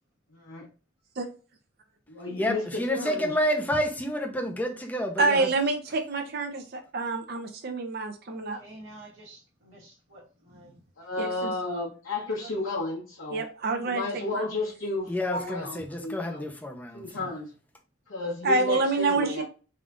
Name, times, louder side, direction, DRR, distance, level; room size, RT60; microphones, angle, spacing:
voice 1, 0.3-0.6 2.1-3.3 11.0-13.4 13.8-16.5 16.9-17.5 18.1-19.4, left 2 dB, 85° left, 1.2 m, -32 dB
voice 2, 2.4-5.5 15.1-17.0, equal, 10° left, 0.5 m, -29 dB
voice 3, 5.2-8.6 11.2-11.5 13.3-14.1 14.3-14.5 18.4-19.4, right 3 dB, 50° right, 0.6 m, -27 dB
voice 4, 8.3-10.8 12.1-12.6, right 2 dB, 80° right, 1.2 m, -49 dB
3.5 x 2.3 x 3.7 m
head